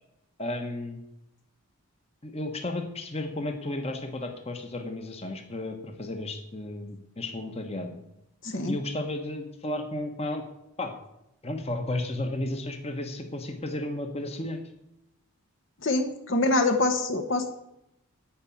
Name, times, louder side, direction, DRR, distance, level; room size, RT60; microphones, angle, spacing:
voice 1, 0.4-1.0 2.2-8.0 8.7-10.4 10.8-10.9 11.4-14.6, left 1 dB, 25° left, 5 dB, 1.2 m, -33 dB
voice 2, 8.4-8.7 15.8-17.6, left 2 dB, 55° left, 7 dB, 1.1 m, -25 dB
12.0 x 5.2 x 8.5 m, 0.84 s
head